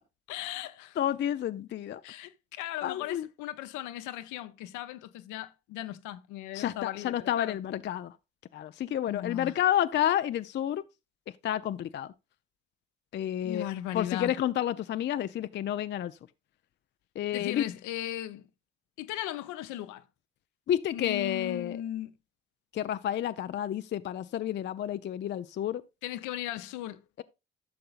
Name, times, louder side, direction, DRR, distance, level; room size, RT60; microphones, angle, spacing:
voice 1, 0.3-1.0 2.0-7.6 9.1-9.6 13.4-14.3 17.3-18.4 19.0-20.0 20.9-22.1 26.0-27.0, left 13 dB, 60° left, 0.8 m, -37 dB
voice 2, 1.0-2.0 2.8-3.3 6.5-8.1 8.5-10.8 11.4-12.1 13.1-13.6 13.9-16.1 17.2-17.6 20.7-21.8 22.7-25.8, left 11 dB, 35° left, 0.5 m, -30 dB
13.5 x 6.6 x 2.5 m
figure-of-eight pair, 45°, 34 cm